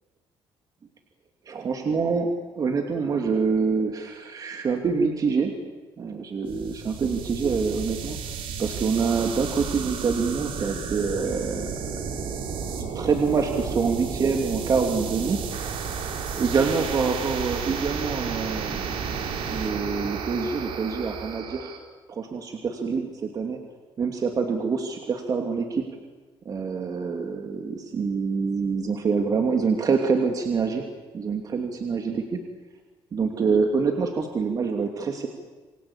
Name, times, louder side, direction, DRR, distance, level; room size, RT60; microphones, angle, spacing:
voice 1, 1.5-2.3 2.6-5.5 6.0-8.2 8.6-15.4 16.4-21.7 22.1-23.6 24.0-25.9 26.4-30.8 31.1-32.4 33.1-35.3, right 5 dB, 40° right, 3 dB, 2.9 m, -26 dB
sound 1, 6.5-21.8, right 6 dB, 75° right, 4.7 m, -32 dB
28.0 x 23.0 x 8.8 m, 1.3 s
cardioid pair, 130°, 10 cm